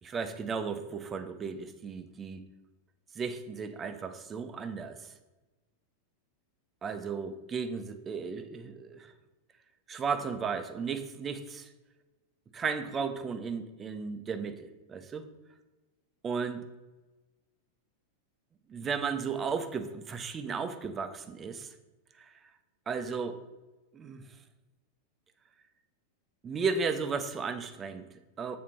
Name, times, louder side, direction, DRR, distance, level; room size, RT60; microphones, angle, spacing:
voice 1, 0.0-2.4 3.1-5.1 6.8-9.1 9.9-11.7 12.5-15.3 16.2-16.7 18.7-21.7 22.2-22.3 22.9-23.4 23.9-24.3 26.4-28.6, right 5 dB, 20° right, 8 dB, 0.6 m, -35 dB
7.5 x 4.2 x 5.7 m, 1.1 s
figure-of-eight pair, 90°, 0 cm